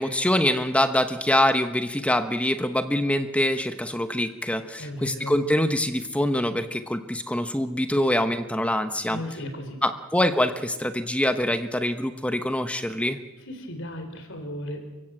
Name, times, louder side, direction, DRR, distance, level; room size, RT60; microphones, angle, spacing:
voice 1, 0.0-9.2 9.8-13.2, left 1 dB, 5° left, 9 dB, 0.9 m, -24 dB
voice 2, 4.8-5.4 9.1-9.8 13.5-14.8, left 1 dB, 55° left, 6 dB, 4.3 m, -35 dB
29.5 x 16.5 x 7.8 m, 1.1 s
head